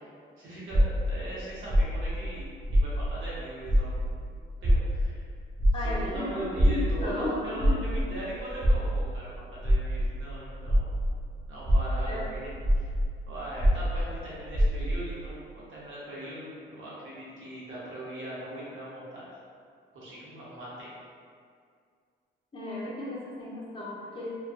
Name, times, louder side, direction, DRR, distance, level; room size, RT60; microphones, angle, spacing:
voice 1, 0.4-4.3 4.6-5.2 5.8-10.9 11.5-12.9 13.3-19.3 19.9-20.9, right 1 dB, 80° right, -8 dB, 0.9 m, -40 dB
sound 1, 0.7-3.4 3.6-11.2 11.6-15.1, equal, 30° right, 0.6 m, -25 dB
voice 2, 5.7-7.9 12.1-12.2 22.5-24.4, left 1 dB, 25° left, -6 dB, 0.7 m, -35 dB
2.5 x 2.3 x 2.4 m, 2.2 s
cardioid pair, 90°, 20 cm